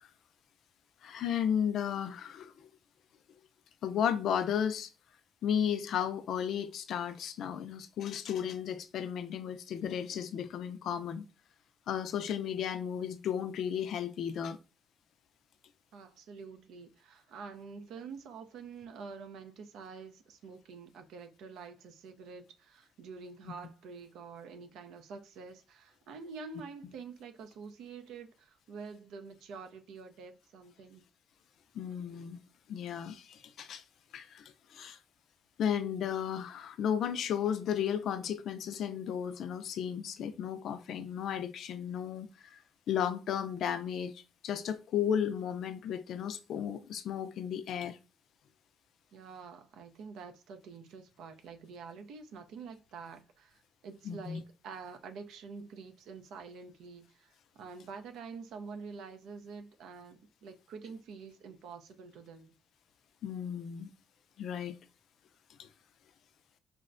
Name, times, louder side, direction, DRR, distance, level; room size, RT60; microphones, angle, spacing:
voice 1, 1.0-2.7 3.8-4.9 5.4-11.2 11.9-14.6 23.4-23.5 31.7-32.4 32.7-33.8 34.1-35.0 35.6-42.6 42.9-48.0 54.0-54.4 63.2-63.9 64.4-64.8 65.6-65.7, left 8 dB, 65° left, 0.3 m, -34 dB
voice 2, 15.9-31.0 49.1-62.5, right 5 dB, 85° right, 0.4 m, -47 dB
4.4 x 2.1 x 2.5 m
cardioid pair, 135°, 0 cm